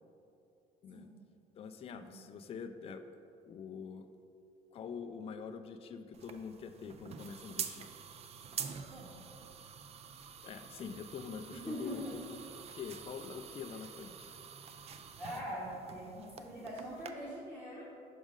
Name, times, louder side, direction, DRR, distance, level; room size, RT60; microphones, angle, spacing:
voice 1, 1.6-3.0 3.5-4.1 4.7-7.9 10.4-12.2 12.5-14.3, left 6 dB, 35° left, 7 dB, 0.3 m, -45 dB
sound 1, 6.1-17.1, right 7 dB, 40° right, 0.4 m, -47 dB
voice 2, 8.8-9.2 11.4-12.2 15.2-17.9, equal, 10° right, -7 dB, 0.9 m, -43 dB
6.3 x 5.0 x 3.7 m, 2.7 s
cardioid pair, 110°, 17 cm